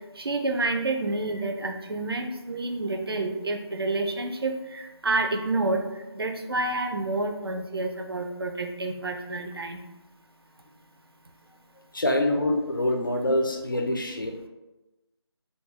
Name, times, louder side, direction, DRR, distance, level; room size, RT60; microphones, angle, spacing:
voice 1, 0.2-5.8 6.2-9.8, right 2 dB, 60° right, 4 dB, 0.4 m, -29 dB
voice 2, 11.8-14.5, left 1 dB, 50° left, 4 dB, 0.4 m, -26 dB
2.7 x 2.1 x 3.4 m, 1.0 s
figure-of-eight pair, 170°, 14 cm